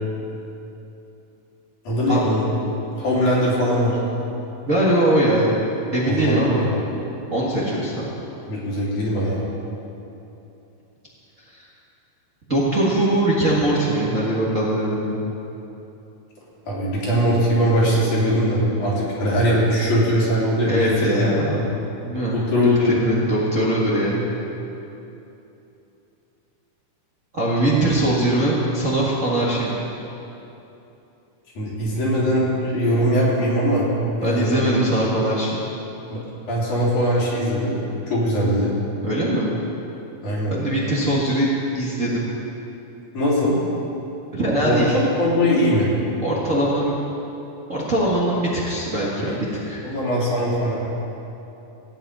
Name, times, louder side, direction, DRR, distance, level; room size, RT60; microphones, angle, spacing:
voice 1, 1.8-4.0 6.1-6.8 8.5-9.4 16.7-21.6 22.3-23.0 31.6-33.9 34.2-34.7 36.1-36.2 36.5-37.8 38.1-38.7 40.2-40.5 43.1-43.6 44.6-45.9 49.2-49.4 49.8-50.8, equal, 70° left, -6 dB, 4.4 m, -21 dB
voice 2, 4.6-5.5 5.9-6.6 7.3-8.1 11.5-11.7 12.5-15.2 20.7-21.5 22.0-24.2 27.3-29.8 34.2-35.6 39.0-39.6 40.5-41.5 41.7-42.3 44.3-45.0 46.2-47.0 47.7-49.8, right 1 dB, 35° right, -7 dB, 1.5 m, -21 dB
16.5 x 5.7 x 9.2 m, 2.9 s
omnidirectional pair, 3.6 m